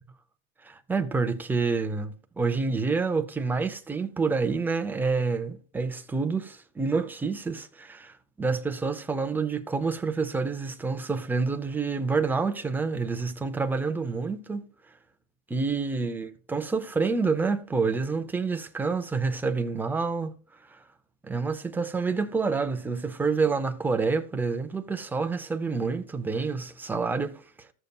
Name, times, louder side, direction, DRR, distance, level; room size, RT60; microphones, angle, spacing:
voice 1, 0.6-14.6 15.5-20.3 20.7-20.8 21.2-27.7, right 4 dB, 5° right, 0.4 m, -28 dB
14.5 x 6.6 x 2.3 m
supercardioid pair, 130°, 42 cm